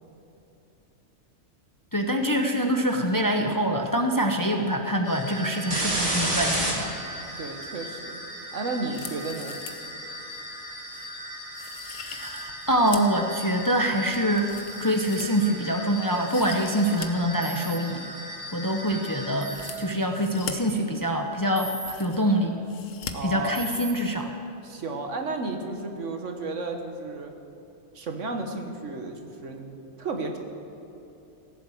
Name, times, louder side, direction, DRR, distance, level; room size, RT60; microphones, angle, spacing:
voice 1, 1.9-6.9 12.1-18.0 18.5-22.6 23.2-24.3, equal, 20° left, 3 dB, 0.7 m, -25 dB
sound 1, 5.1-19.7, equal, 40° right, 3.0 m, -35 dB
voice 2, 7.4-8.2 8.5-9.6 23.1-23.6 24.6-27.3 27.9-30.4, right 3 dB, 75° right, 4 dB, 1.6 m, -33 dB
sound 2, 8.8-9.9 10.3-10.4 10.9-11.1 11.5-13.2 13.6-15.7 16.1-17.1 17.4-17.5 19.4-20.5 21.3-21.4 21.6-22.3 22.7-23.1 23.4-23.5, left 7 dB, 85° left, 1.3 m, -41 dB
sound 3, 17.4-17.8 19.4-19.8 21.6-21.9 23.5-23.9, right 1 dB, 20° right, 1.3 m, -37 dB
16.5 x 7.5 x 7.7 m, 2.9 s
omnidirectional pair, 1.3 m